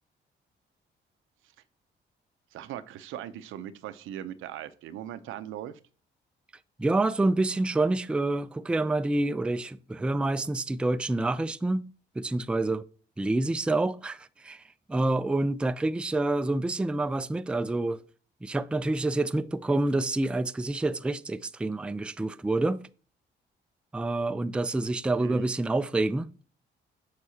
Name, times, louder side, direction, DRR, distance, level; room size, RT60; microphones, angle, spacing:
voice 1, 2.5-5.8 25.2-25.5, right 11 dB, 85° right, 0.6 m, -39 dB
voice 2, 6.8-11.9 12.2-12.9 13.2-14.6 14.9-18.0 18.4-22.8 23.9-26.3, right 2 dB, 5° right, 0.3 m, -27 dB
6.7 x 6.3 x 2.8 m
cardioid pair, 90°, 20 cm